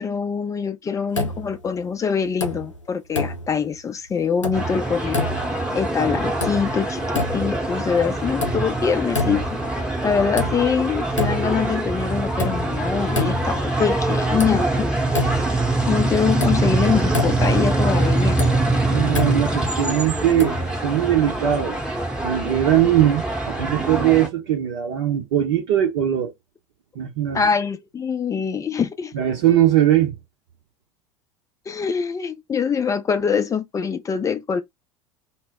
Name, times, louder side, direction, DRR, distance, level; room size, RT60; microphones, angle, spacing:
voice 1, 0.0-5.3 5.7-7.0 7.3-9.4 10.0-14.9 15.9-18.4 27.3-29.1 31.7-34.6, left 6 dB, 20° left, 0.5 m, -24 dB
sound 1, 1.1-1.8 2.2-2.8 3.1-3.8 4.2-4.8 5.1-5.7 6.2-6.9 7.1-7.7 8.1-8.8 9.1-9.7 10.1-10.8 11.1-11.7 12.1-13.7 14.1-14.2 14.4-15.7 15.9-16.0 16.4-17.7 18.1-19.7 20.4-20.8, left 3 dB, 90° left, 0.4 m, -28 dB
sound 2, 4.5-24.3, right 2 dB, 5° right, 0.9 m, -24 dB
voice 2, 18.9-20.6 20.8-21.8 22.2-26.3 27.0-27.4 29.1-30.2, right 11 dB, 60° right, 0.7 m, -20 dB
2.1 x 2.1 x 3.5 m
figure-of-eight pair, 70°, 15 cm